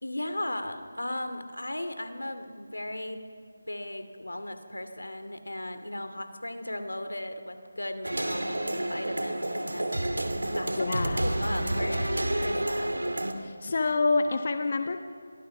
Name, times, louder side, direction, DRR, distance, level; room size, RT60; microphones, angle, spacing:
voice 1, 0.0-3.2 3.7-9.9 10.5-10.9 11.2-12.9, left 1 dB, 90° left, 9 dB, 2.5 m, -36 dB
sound 1, 8.0-13.3, right 1 dB, 85° right, 2.5 m, -29 dB
voice 2, 10.8-11.3 13.3-15.0, left 3 dB, 45° left, 7 dB, 1.2 m, -27 dB
29.0 x 23.5 x 5.7 m, 2.3 s
figure-of-eight pair, 165°, 0 cm